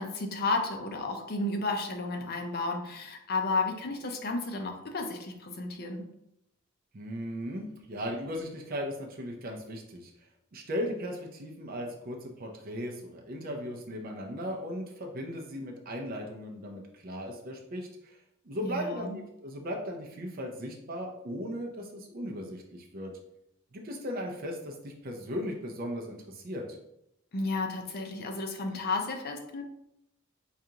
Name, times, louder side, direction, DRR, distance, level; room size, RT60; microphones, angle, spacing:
voice 1, 0.0-6.0 18.6-19.2 27.3-29.6, left 3 dB, 50° left, 3 dB, 0.5 m, -32 dB
voice 2, 6.9-10.1 10.5-18.2 18.4-23.1 23.7-26.7, equal, 45° right, 1 dB, 0.5 m, -37 dB
4.8 x 2.4 x 2.8 m, 0.81 s
head